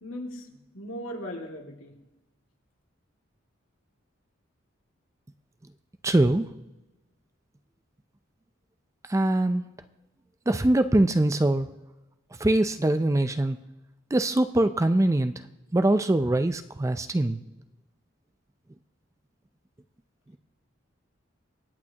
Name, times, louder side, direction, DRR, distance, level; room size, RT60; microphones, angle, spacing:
voice 1, 0.0-2.0, equal, 80° left, 0 dB, 2.3 m, -38 dB
voice 2, 6.0-6.5 9.1-9.6 10.5-11.7 12.4-13.6 14.1-15.3 15.7-17.4, right 1 dB, 15° right, 10 dB, 0.4 m, -23 dB
25.0 x 8.6 x 2.9 m, 1.0 s
head